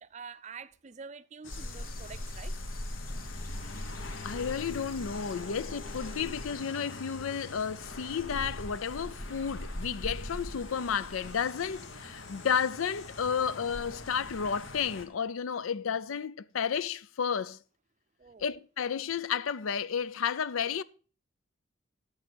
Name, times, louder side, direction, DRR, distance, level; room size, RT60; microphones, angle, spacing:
voice 1, 0.0-2.6 18.2-18.6, right 5 dB, 35° right, 0.5 m, -47 dB
sound 1, 1.4-15.0, left 2 dB, 70° left, 1.3 m, -43 dB
sound 2, 1.5-6.5, left 1 dB, 45° left, 1.0 m, -40 dB
voice 2, 4.2-17.6 18.4-20.8, left 7 dB, 85° left, 0.5 m, -32 dB
11.5 x 7.3 x 4.0 m
head